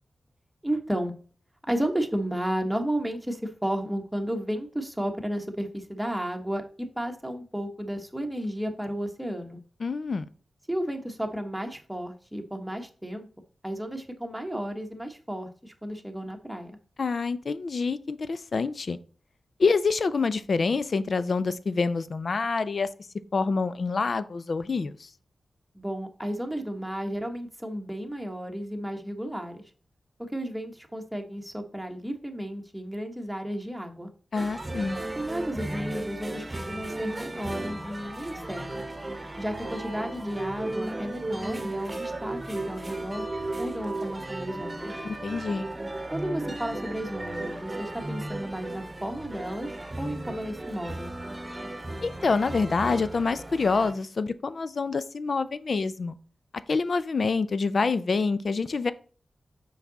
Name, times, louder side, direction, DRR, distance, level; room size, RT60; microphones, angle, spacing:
voice 1, 0.6-1.1 1.7-9.6 10.7-13.3 13.6-16.8 25.7-29.6 30.2-34.1 35.1-38.7 39.4-43.2 43.6-45.0 46.1-51.1, equal, 5° right, 1.4 m, -33 dB
voice 2, 9.8-10.3 17.0-19.0 19.6-22.9 23.3-25.1 34.3-35.0 45.0-45.7 52.0-56.2 56.7-58.9, left 4 dB, 65° left, 0.5 m, -26 dB
sound 1, 34.3-53.9, right 2 dB, 30° right, 1.1 m, -35 dB
5.8 x 4.7 x 4.1 m
cardioid pair, 50°, 0 cm